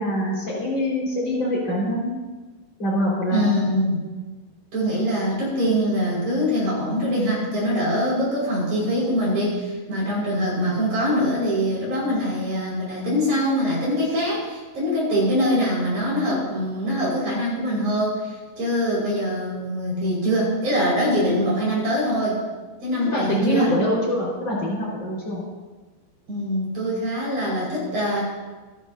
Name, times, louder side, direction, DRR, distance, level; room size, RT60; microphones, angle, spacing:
voice 1, 0.0-2.1 2.8-3.6 9.9-10.1 23.1-25.4, equal, 30° left, -4 dB, 5.8 m, -24 dB
voice 2, 3.3-4.0 4.7-22.4 22.8-23.7 26.3-28.2, equal, 50° right, -6 dB, 7.2 m, -23 dB
27.0 x 11.0 x 2.9 m, 1.3 s
omnidirectional pair, 4.6 m